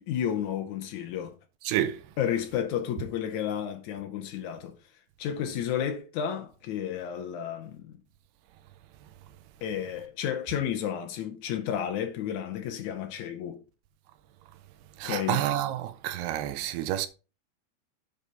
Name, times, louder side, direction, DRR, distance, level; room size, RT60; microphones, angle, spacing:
voice 1, 0.1-1.3 2.2-4.8 5.2-8.0 9.6-13.6 15.0-15.4, left 9 dB, 85° left, 1.6 m, -32 dB
voice 2, 1.7-2.0 15.0-17.1, right 12 dB, 85° right, 2.8 m, -29 dB
8.1 x 5.0 x 5.2 m
omnidirectional pair, 4.6 m